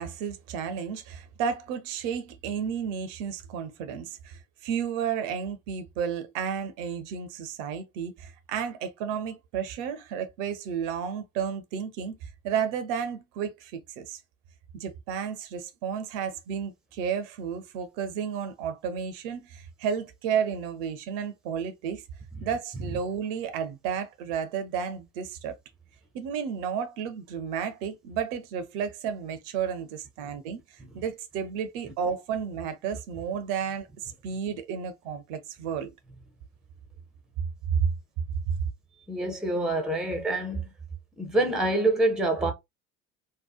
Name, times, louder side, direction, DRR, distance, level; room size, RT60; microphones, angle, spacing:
voice 1, 0.0-14.2 14.7-22.0 22.4-25.6 26.1-35.9 37.7-37.9 38.5-38.6, right 7 dB, 60° right, 0.6 m, -32 dB
voice 2, 39.1-40.7 41.2-42.5, right 2 dB, ahead, 0.6 m, -26 dB
2.7 x 2.1 x 2.3 m
figure-of-eight pair, 60°, 43 cm